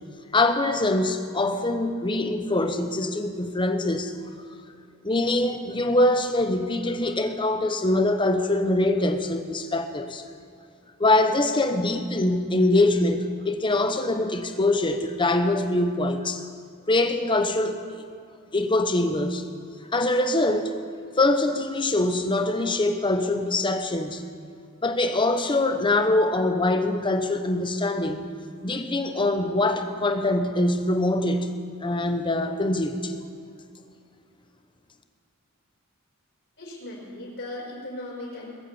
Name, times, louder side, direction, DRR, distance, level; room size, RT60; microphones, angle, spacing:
voice 1, 0.3-4.1 5.0-10.2 11.0-16.4 16.9-17.8 18.5-19.4 19.9-20.7 21.2-24.2 24.8-28.3 28.6-31.5 31.8-33.1, left 2 dB, 20° left, 7 dB, 1.0 m, -23 dB
voice 2, 36.6-38.6, left 1 dB, 55° left, -3 dB, 5.2 m, -37 dB
22.0 x 8.3 x 7.1 m, 2.4 s
head